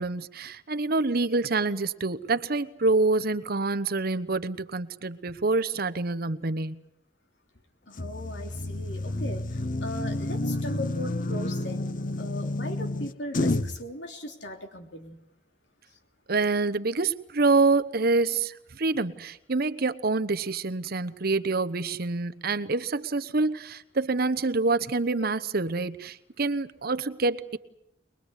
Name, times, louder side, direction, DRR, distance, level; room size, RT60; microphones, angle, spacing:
voice 1, 0.0-6.8 16.3-27.6, right 3 dB, 60° right, 1.0 m, -26 dB
voice 2, 7.9-9.4 9.8-11.9 12.2-15.2, left 1 dB, 75° left, 3.3 m, -38 dB
sound 1, 8.0-13.8, left 2 dB, 50° left, 0.9 m, -30 dB
22.5 x 22.0 x 8.2 m
head